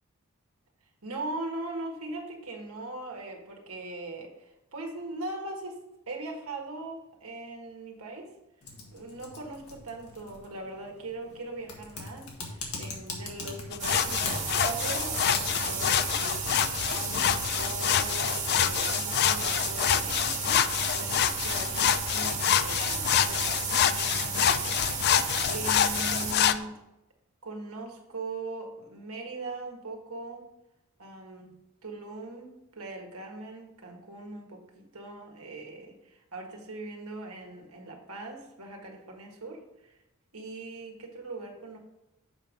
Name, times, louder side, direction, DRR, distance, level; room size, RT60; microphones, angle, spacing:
voice 1, 1.0-5.8 6.1-8.3 8.9-25.2 25.5-26.8 27.4-30.5 31.0-31.5 31.8-40.0 40.3-41.8, right 2 dB, 75° right, 2 dB, 1.6 m, -40 dB
Typing, 8.6-26.6, left 3 dB, 80° left, 1.8 m, -44 dB
sound 1, 13.7-26.6, left 10 dB, 50° left, 0.3 m, -27 dB
sound 2, 13.8-26.3, right 5 dB, 30° right, 1.8 m, -33 dB
7.2 x 5.3 x 5.1 m, 0.92 s
head